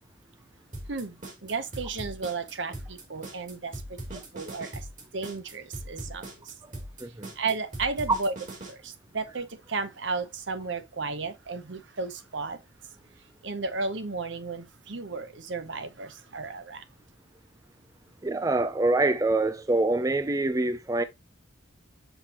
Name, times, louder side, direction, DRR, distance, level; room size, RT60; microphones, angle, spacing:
sound 1, 0.7-8.7, right 1 dB, 40° right, 2.5 m, -40 dB
voice 1, 0.9-4.9 5.1-6.5 7.4-8.3 8.7-12.6 13.4-16.9, right 4 dB, 65° right, 0.9 m, -34 dB
voice 2, 18.2-21.0, right 2 dB, 15° right, 0.4 m, -25 dB
5.8 x 5.8 x 2.9 m
head